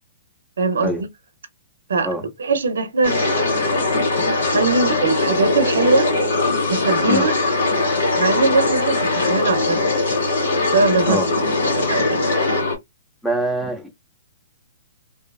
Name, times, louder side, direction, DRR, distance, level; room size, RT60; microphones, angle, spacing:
voice 1, 0.6-1.1 1.9-2.1 2.4-3.3 4.2-6.1 6.7-7.5 8.2-10.0 10.6-11.2 11.6-12.3, right 3 dB, 90° right, 0.5 m, -21 dB
sound 1, 3.0-12.8, left 2 dB, 70° left, 1.6 m, -20 dB
voice 2, 13.2-13.9, equal, 5° left, 0.5 m, -23 dB
2.6 x 2.3 x 2.3 m
hypercardioid pair, 160°, 0 cm